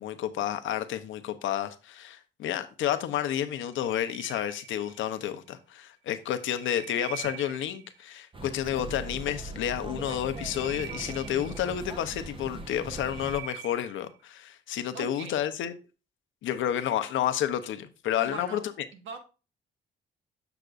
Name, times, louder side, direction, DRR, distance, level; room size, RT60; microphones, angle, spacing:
voice 1, 0.0-15.7 16.4-18.6, left 10 dB, 80° left, 0.8 m, -30 dB
sound 1, 3.7-5.3 6.2-8.1 10.0-12.1 12.6-14.2, right 18 dB, 60° right, 0.4 m, -45 dB
sound 2, 8.3-13.4, right 2 dB, 25° right, 1.0 m, -40 dB
voice 2, 14.9-15.4 18.2-18.6 18.9-19.2, right 5 dB, 85° right, 1.5 m, -41 dB
7.9 x 5.9 x 2.5 m
cardioid pair, 90°, 20 cm